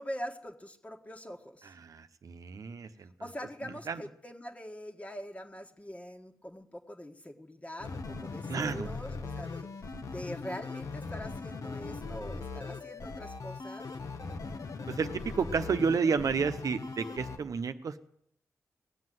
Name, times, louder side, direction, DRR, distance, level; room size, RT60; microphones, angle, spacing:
voice 1, 0.0-1.7 3.2-9.7 10.1-13.9, equal, 25° left, 3 dB, 1.6 m, -43 dB
voice 2, 1.6-3.3 3.6-4.0 8.5-8.9 14.9-18.0, right 5 dB, 70° right, 10 dB, 0.9 m, -31 dB
sound 1, 7.8-17.4, left 4 dB, 70° left, 1.2 m, -40 dB
18.5 x 7.8 x 7.8 m, 0.72 s
cardioid pair, 65°, 6 cm